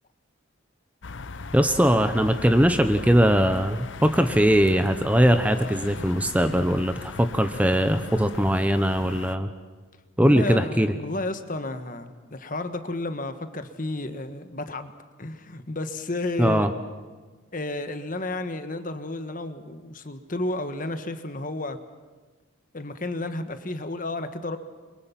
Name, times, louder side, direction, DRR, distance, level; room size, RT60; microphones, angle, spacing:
sound 1, 1.0-9.3, left 3 dB, 65° left, 0.8 m, -38 dB
voice 1, 1.5-9.5 10.2-10.9 16.4-16.7, equal, 5° right, 8 dB, 0.8 m, -21 dB
voice 2, 10.2-14.9 15.2-16.7 17.5-21.8 22.7-24.6, left 2 dB, 40° left, 9 dB, 1.4 m, -32 dB
29.5 x 23.5 x 5.9 m, 1.3 s
head